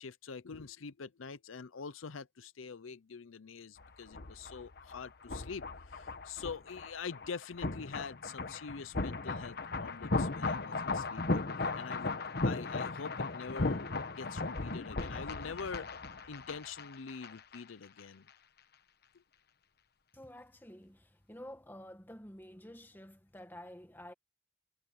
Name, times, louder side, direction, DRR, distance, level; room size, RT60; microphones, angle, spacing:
voice 1, 0.0-13.8 14.1-15.9 16.3-18.3, left 5 dB, 85° left, 0.6 m, -45 dB
sound 1, 3.8-17.6 17.8-18.0, left 3 dB, 55° left, 1.2 m, -37 dB
voice 2, 20.1-24.1, left 1 dB, 10° left, 1.5 m, -50 dB
head